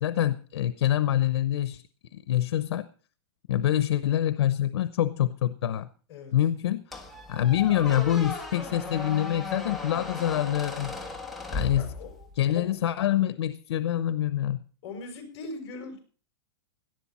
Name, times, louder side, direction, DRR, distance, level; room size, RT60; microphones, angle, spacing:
voice 1, 0.0-1.8 2.1-2.9 3.5-5.9 6.3-6.8 7.3-10.9 11.5-11.8 12.4-14.6, left 12 dB, 85° left, 13 dB, 0.8 m, -25 dB
Squeak, 6.9-12.4, left 3 dB, ahead, 1.3 m, -36 dB
voice 2, 11.7-12.7 14.8-16.0, left 3 dB, 35° left, 3 dB, 5.8 m, -40 dB
18.0 x 12.0 x 4.2 m, 0.39 s
supercardioid pair, 175°, 14 cm